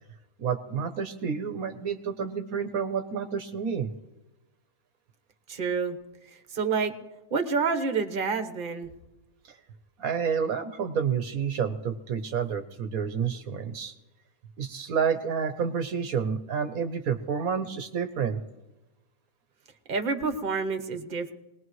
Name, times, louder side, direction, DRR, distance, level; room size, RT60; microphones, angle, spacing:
voice 1, 0.4-3.9 9.5-9.6 10.0-13.9 14.6-18.4, right 7 dB, 70° right, 8 dB, 1.3 m, -29 dB
voice 2, 5.5-6.0 6.3-6.9 7.3-8.9 19.9-21.3, right 5 dB, 35° right, 7 dB, 1.3 m, -28 dB
22.5 x 19.5 x 3.1 m, 1.0 s
omnidirectional pair, 1.6 m